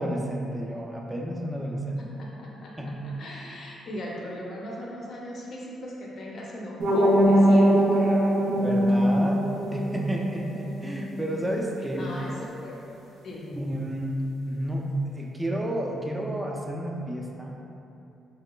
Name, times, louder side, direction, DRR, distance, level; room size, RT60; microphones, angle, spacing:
voice 1, 0.0-2.0 2.8-2.9 8.6-12.1 13.5-14.2 14.4-17.6, right 1 dB, 15° right, -1 dB, 0.3 m, -31 dB
voice 2, 2.2-2.7 3.0-8.4 12.0-12.8 13.2-13.5, equal, 60° left, -4 dB, 0.5 m, -38 dB
sound 1, 6.8-11.7, equal, 80° right, 0.4 m, -22 dB
2.9 x 2.3 x 2.2 m, 2.7 s
cardioid pair, 90°, 0 cm